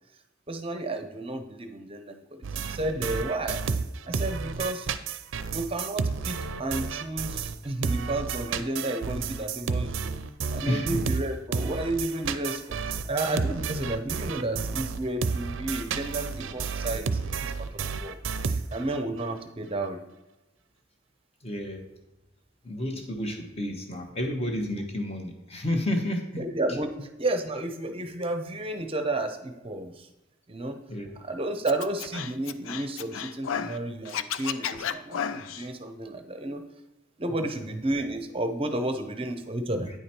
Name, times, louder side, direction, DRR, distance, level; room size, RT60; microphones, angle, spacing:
voice 1, 0.5-3.6 4.1-4.9 5.5-10.1 10.5-18.2 18.5-20.0 26.4-30.1 30.5-30.8 31.2-36.6 37.2-39.9, right 2 dB, 25° right, 7 dB, 0.7 m, -32 dB
sound 1, 2.4-7.6 7.8-19.0, right 5 dB, 70° right, 0.5 m, -31 dB
voice 2, 10.6-11.0 21.4-21.9 22.6-26.4 30.9-31.1, left 1 dB, 30° left, 3 dB, 1.1 m, -30 dB
Scratching (performance technique), 31.7-33.8 34.1-35.7, left 8 dB, 75° left, 0.4 m, -33 dB
9.5 x 5.0 x 4.3 m, 1.0 s
head